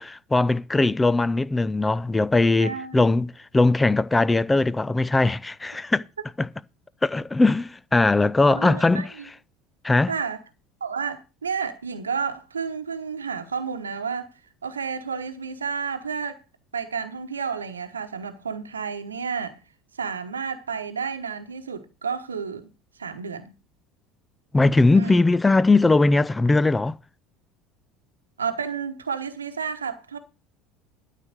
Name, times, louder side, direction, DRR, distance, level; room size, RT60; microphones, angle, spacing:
voice 1, 0.0-3.3 3.5-6.0 6.4-6.5 7.0-9.1 9.8-10.1 24.5-27.0, left 3 dB, 15° left, 0.5 m, -20 dB
voice 2, 2.6-3.0 8.5-9.1 10.1-10.4 10.8-14.3 14.6-16.4 16.7-19.6 19.9-22.7 23.0-23.5 24.9-25.2 28.4-30.2, right 6 dB, 80° right, 1.1 m, -31 dB
12.5 x 5.9 x 6.5 m
figure-of-eight pair, 65°, 0 cm